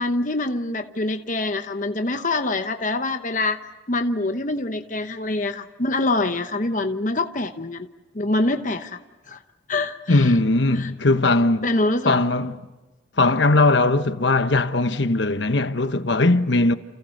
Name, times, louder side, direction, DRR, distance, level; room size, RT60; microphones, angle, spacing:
voice 1, 0.0-3.6 3.9-7.9 8.1-9.0 9.3-9.4 9.7-10.3 10.7-10.9 11.6-12.2, left 2 dB, 40° left, 1.0 m, -25 dB
voice 2, 10.1-11.7 12.0-12.6 13.2-16.7, left 2 dB, 65° left, 1.2 m, -19 dB
29.5 x 28.5 x 6.6 m
head